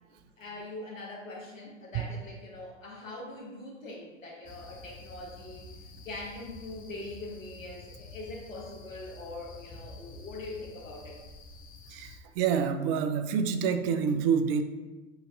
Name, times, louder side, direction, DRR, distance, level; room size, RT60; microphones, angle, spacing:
voice 1, 0.4-11.2, left 2 dB, 90° left, -2 dB, 1.1 m, -42 dB
sound 1, 4.4-12.2, left 3 dB, 25° left, 0.4 m, -49 dB
voice 2, 11.9-14.6, right 6 dB, 50° right, 9 dB, 0.5 m, -27 dB
7.8 x 2.6 x 2.3 m, 1.2 s
figure-of-eight pair, 85°, 39 cm